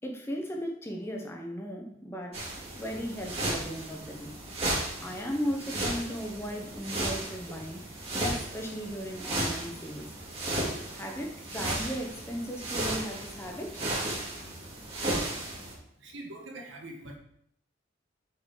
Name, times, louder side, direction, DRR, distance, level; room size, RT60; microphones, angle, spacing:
voice 1, 0.0-2.5 2.7-4.4 5.0-7.8 8.2-10.1 10.9-13.8, equal, 15° left, 1 dB, 0.8 m, -36 dB
sound 1, 2.3-15.7, right 1 dB, 30° right, 2.5 m, -35 dB
voice 2, 16.0-17.2, right 1 dB, 70° right, 0 dB, 1.5 m, -43 dB
7.3 x 4.6 x 4.8 m, 0.69 s
head